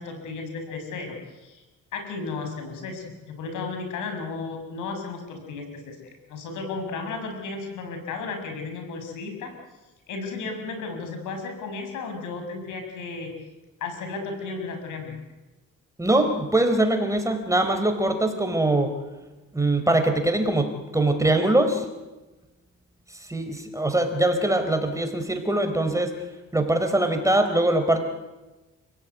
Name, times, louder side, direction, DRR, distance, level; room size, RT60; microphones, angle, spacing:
voice 1, 0.0-1.6 1.9-9.5 10.1-13.3 13.8-15.2, left 4 dB, 90° left, 5 dB, 6.4 m, -34 dB
voice 2, 16.0-18.9 19.5-20.7 20.9-21.9 23.3-26.1 26.5-28.0, right 1 dB, 10° right, 6 dB, 4.4 m, -22 dB
30.0 x 17.0 x 9.6 m, 1.1 s
cardioid pair, 90°, 30 cm